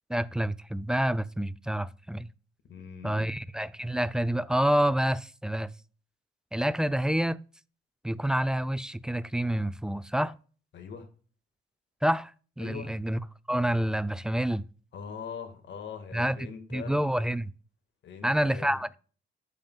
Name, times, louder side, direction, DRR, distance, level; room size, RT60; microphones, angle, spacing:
voice 1, 0.1-2.3 3.0-5.7 6.5-7.4 8.0-10.4 12.0-12.3 12.6-13.2 13.5-14.6 16.1-16.4 16.7-17.5 18.2-19.0, right 1 dB, 5° right, 0.4 m, -28 dB
voice 2, 2.7-3.3 10.7-11.1 12.6-12.9 14.9-17.0 18.0-18.8, left 6 dB, 65° left, 1.9 m, -42 dB
13.0 x 5.3 x 2.4 m
cardioid pair, 90°, 20 cm